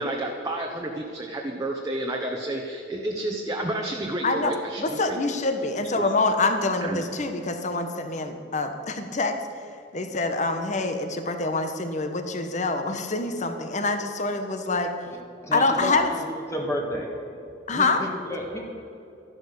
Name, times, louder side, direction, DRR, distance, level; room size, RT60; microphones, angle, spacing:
voice 1, 0.0-5.2 6.0-6.1 6.8-7.0, right 1 dB, 20° right, -1 dB, 1.2 m, -30 dB
voice 2, 4.8-9.4 9.9-14.9 15.5-16.1 17.7-18.1, left 3 dB, 40° left, 7 dB, 1.3 m, -26 dB
voice 3, 15.4-16.2 16.5-17.3 17.7-17.9 18.3-18.6, equal, 15° left, 0 dB, 1.8 m, -30 dB
13.0 x 11.5 x 6.8 m, 2.8 s
head